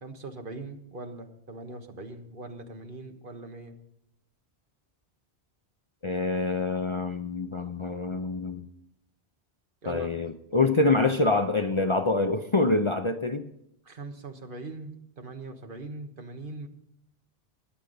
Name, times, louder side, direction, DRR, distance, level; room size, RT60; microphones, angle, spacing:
voice 1, 0.0-3.7 9.8-10.1 13.8-16.7, right 2 dB, 55° right, 5 dB, 1.5 m, -41 dB
voice 2, 6.0-8.7 9.9-13.5, left 3 dB, 35° left, 7 dB, 0.6 m, -26 dB
21.5 x 8.2 x 4.0 m, 0.78 s
omnidirectional pair, 1.1 m